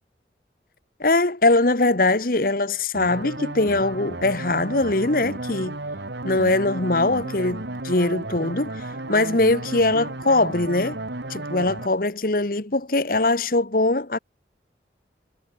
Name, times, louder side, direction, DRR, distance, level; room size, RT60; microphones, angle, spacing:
voice 1, 1.0-5.8 6.2-11.0 11.3-14.2, left 2 dB, 50° left, 1.4 m, -22 dB
sound 1, 2.9-11.9, right 2 dB, 75° right, 2.2 m, -33 dB
head